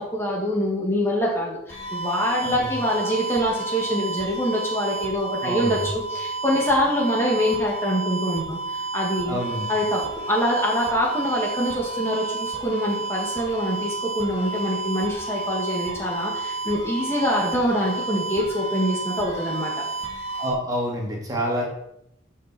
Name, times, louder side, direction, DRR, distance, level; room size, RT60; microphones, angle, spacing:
voice 1, 0.0-9.4 9.7-19.7, equal, 15° left, -3 dB, 2.2 m, -25 dB
sound 1, 1.7-20.5, right 3 dB, 35° left, 2.8 m, -31 dB
voice 2, 2.4-2.8 3.0-3.1 5.4-5.8 9.3-9.7 20.3-21.7, equal, 20° right, -2 dB, 2.6 m, -28 dB
15.0 x 6.5 x 4.6 m, 0.79 s
head